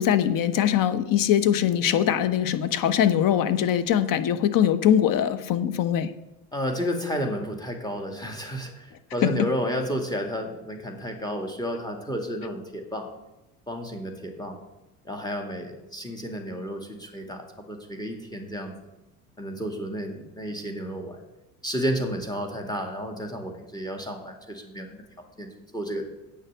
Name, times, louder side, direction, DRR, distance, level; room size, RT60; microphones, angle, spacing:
voice 1, 0.0-6.1 9.2-9.5, left 10 dB, 45° left, 12 dB, 1.0 m, -22 dB
voice 2, 6.5-13.1 13.7-14.6 15.0-18.7 19.4-21.2 21.6-26.1, equal, 10° left, 3 dB, 2.2 m, -32 dB
8.9 x 6.5 x 8.0 m, 1.0 s
hypercardioid pair, 80°, 45 cm